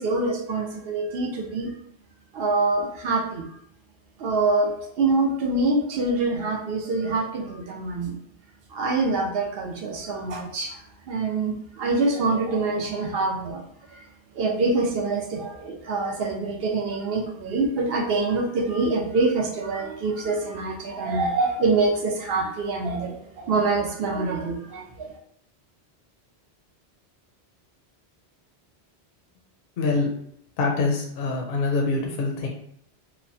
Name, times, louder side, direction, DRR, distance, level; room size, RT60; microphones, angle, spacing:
voice 1, 0.0-1.7 2.3-3.5 4.2-8.2 8.7-10.8 11.1-13.6 13.9-14.0 14.4-25.1, right 3 dB, 70° right, 2 dB, 0.8 m, -25 dB
voice 2, 29.8-30.1 30.6-32.5, left 3 dB, 65° left, 0 dB, 0.7 m, -24 dB
2.9 x 2.1 x 2.6 m, 0.69 s
omnidirectional pair, 1.1 m